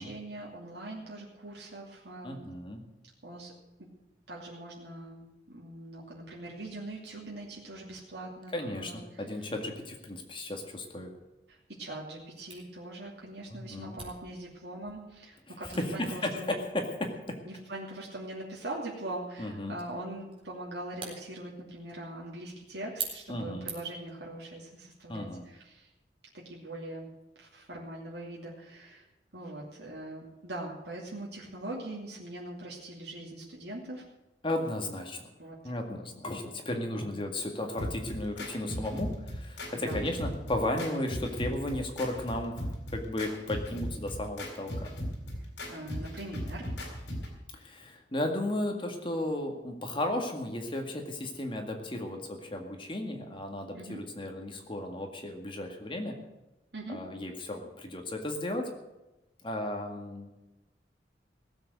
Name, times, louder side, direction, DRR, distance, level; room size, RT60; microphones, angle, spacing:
voice 1, 0.0-2.5 3.2-3.5 3.8-3.9 4.3-9.0 11.5-16.6 17.4-25.9 26.4-27.1 27.4-29.0 29.3-34.0 35.4-35.5 39.7-40.0 45.7-46.7 53.7-54.0 56.7-57.0, right 1 dB, 65° right, -4 dB, 2.8 m, -42 dB
voice 2, 2.2-2.8 8.5-8.9 9.2-11.1 13.5-14.0 15.8-17.4 19.4-19.8 23.3-23.7 25.1-25.5 34.4-35.2 35.6-44.9 47.5-56.2 56.9-58.7 59.4-60.3, left 1 dB, 30° left, 3 dB, 2.0 m, -34 dB
Camera, 12.5-24.1, right 5 dB, 30° right, 4.0 m, -47 dB
sound 1, 37.8-47.4, equal, 70° left, 4.2 m, -38 dB
17.0 x 8.0 x 8.0 m, 1.0 s
head